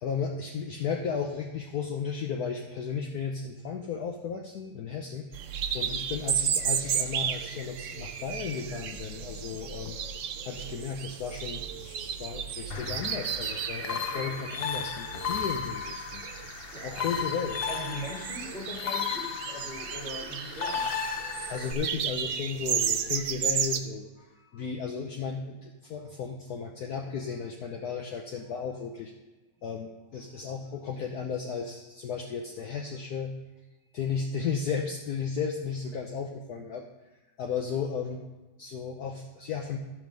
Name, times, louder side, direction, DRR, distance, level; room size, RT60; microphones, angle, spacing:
voice 1, 0.0-5.5 5.7-10.0 10.4-16.2 16.8-17.6 21.5-29.1 29.6-33.3 33.9-36.9 37.4-38.2 38.6-39.8, left 6 dB, 65° left, 2 dB, 1.2 m, -34 dB
sound 1, 5.3-23.8, right 8 dB, 65° right, 0.8 m, -34 dB
sound 2, 12.7-21.7, left 6 dB, 85° left, 0.5 m, -35 dB
voice 2, 16.7-17.4 17.7-20.8, left 1 dB, 25° left, -1 dB, 2.1 m, -41 dB
13.0 x 5.2 x 6.3 m, 1.1 s
omnidirectional pair, 1.9 m